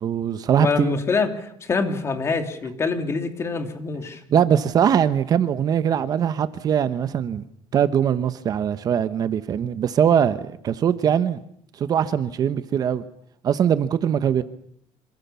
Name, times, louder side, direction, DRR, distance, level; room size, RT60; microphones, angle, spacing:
voice 1, 0.0-0.9 4.3-7.4 7.7-11.4 11.8-13.0 13.4-14.4, right 8 dB, 40° right, 1.1 m, -21 dB
voice 2, 0.6-4.2, left 4 dB, 25° left, 3.1 m, -25 dB
27.0 x 26.0 x 7.1 m
cardioid pair, 155°, 10 cm